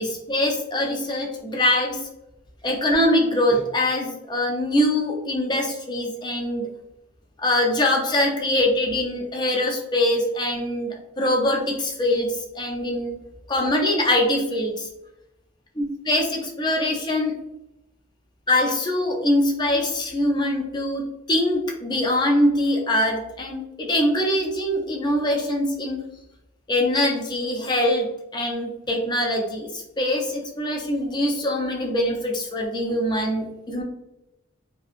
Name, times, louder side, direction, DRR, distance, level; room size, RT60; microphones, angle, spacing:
voice 1, 0.0-2.0 2.6-6.7 7.4-13.1 13.5-14.9 15.8-17.3 18.5-26.0 26.7-33.8, left 1 dB, 20° left, 1 dB, 0.4 m, -23 dB
2.7 x 2.5 x 2.4 m, 0.91 s
head